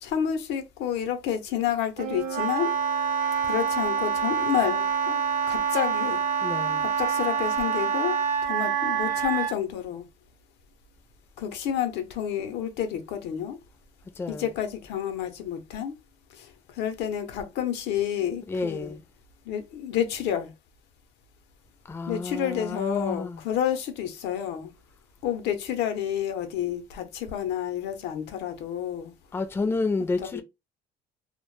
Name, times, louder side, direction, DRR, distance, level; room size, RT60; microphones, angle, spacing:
voice 1, 0.0-2.7 3.4-5.2 5.5-6.2 6.8-10.1 11.4-13.6 14.3-15.9 16.3-19.0 19.5-20.5 22.1-24.7 25.2-29.1 30.2-30.4, left 9 dB, 85° left, 0.6 m, -30 dB
Wind instrument woodwind instrument, 2.0-9.5, right 7 dB, 55° right, 0.5 m, -26 dB
voice 2, 6.4-6.9 14.2-14.5 18.5-19.0 21.9-23.4 29.3-30.4, left 3 dB, 15° left, 0.3 m, -30 dB
2.1 x 2.0 x 3.0 m
cardioid pair, 110°, 17 cm